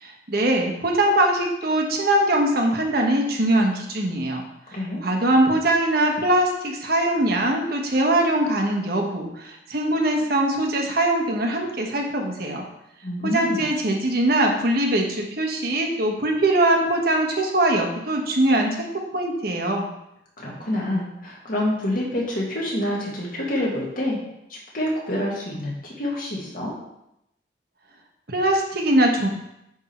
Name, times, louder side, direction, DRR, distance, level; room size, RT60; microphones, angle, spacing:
voice 1, 0.0-4.4 5.0-12.6 13.2-19.9 28.3-29.3, right 1 dB, 55° right, 2 dB, 1.2 m, -22 dB
voice 2, 4.7-5.0 13.0-13.6 20.4-24.2 24.5-26.7, left 1 dB, 50° left, -4 dB, 2.0 m, -27 dB
9.6 x 3.6 x 4.5 m, 0.82 s
head